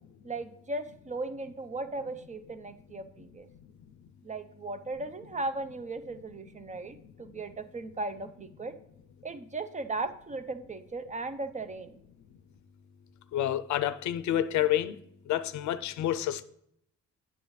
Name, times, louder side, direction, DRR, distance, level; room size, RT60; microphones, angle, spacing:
voice 1, 0.2-3.5 4.2-8.8 9.2-12.0, right 2 dB, 25° right, 0.5 m, -37 dB
voice 2, 13.3-14.9 15.3-16.4, left 12 dB, 70° left, 0.5 m, -28 dB
8.4 x 7.1 x 3.1 m
cardioid pair, 90°, 30 cm